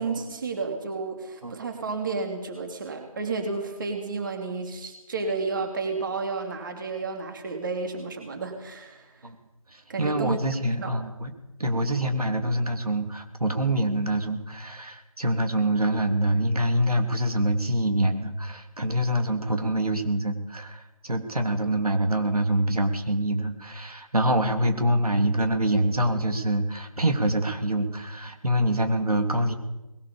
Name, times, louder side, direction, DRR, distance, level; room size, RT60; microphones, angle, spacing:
voice 1, 0.0-9.2 9.9-10.3 10.8-10.9, right 4 dB, 35° right, 4 dB, 3.2 m, -31 dB
voice 2, 9.7-11.3 11.6-29.5, right 1 dB, 85° right, 6 dB, 3.2 m, -25 dB
21.0 x 18.5 x 7.1 m, 0.99 s
figure-of-eight pair, 165°, 19 cm